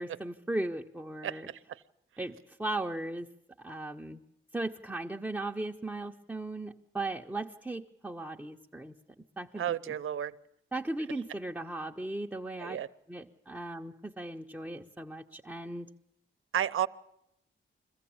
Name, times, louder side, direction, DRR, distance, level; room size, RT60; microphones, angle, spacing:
voice 1, 0.0-1.5 2.2-3.3 3.6-4.2 4.5-8.9 9.4-9.9 10.7-12.8 13.1-15.9, right 2 dB, 5° right, -1 dB, 0.7 m, -37 dB
voice 2, 1.2-1.8 9.5-10.3 12.6-12.9 16.5-16.9, right 10 dB, 80° right, 12 dB, 0.7 m, -32 dB
22.5 x 15.0 x 8.7 m, 0.83 s
wide cardioid pair, 120°, 21 cm